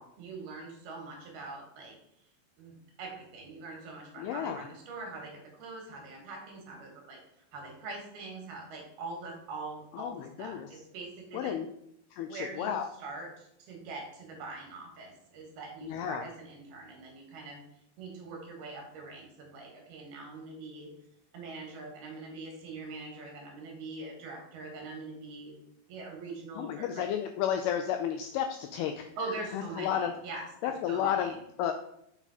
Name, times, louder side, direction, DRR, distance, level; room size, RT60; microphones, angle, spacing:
voice 1, 0.2-2.0 2.6-7.2 7.5-11.5 12.3-12.7 13.0-17.6 18.0-20.9 21.3-25.5 25.9-27.1 29.2-31.4, right 3 dB, 70° right, 1 dB, 3.3 m, -43 dB
voice 2, 4.2-4.6 9.9-10.7 11.3-11.7 12.1-12.9 15.8-16.3 26.6-29.1 29.5-30.1 30.6-31.7, left 9 dB, 85° left, 6 dB, 2.2 m, -32 dB
7.1 x 5.4 x 4.1 m, 0.75 s
omnidirectional pair, 4.9 m